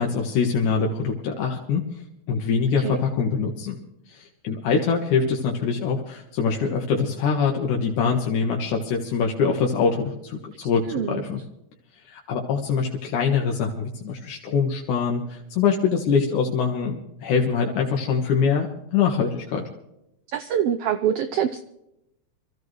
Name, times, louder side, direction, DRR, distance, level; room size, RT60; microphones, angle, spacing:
voice 1, 0.0-1.8 2.3-3.7 4.1-11.4 12.1-19.6, left 5 dB, 80° left, 1 dB, 2.8 m, -24 dB
voice 2, 10.6-11.2 20.3-21.6, right 9 dB, 80° right, 10 dB, 1.4 m, -25 dB
25.0 x 15.0 x 3.2 m, 0.85 s
omnidirectional pair, 3.5 m